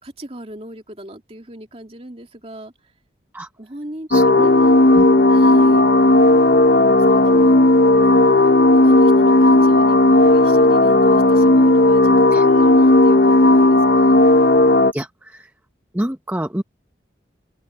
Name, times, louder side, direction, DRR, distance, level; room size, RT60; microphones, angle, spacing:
voice 1, 0.0-2.9 3.6-4.8 5.3-5.9 6.7-7.6 7.9-8.5 8.8-12.1 12.4-14.2, right 1 dB, 35° right, 2.8 m, -37 dB
sound 1, 4.1-14.9, left 2 dB, 55° left, 0.7 m, -13 dB
voice 2, 4.1-4.5 4.9-5.0 12.3-12.5 14.9-15.5 15.9-16.6, right 1 dB, 10° right, 0.7 m, -27 dB
open air
head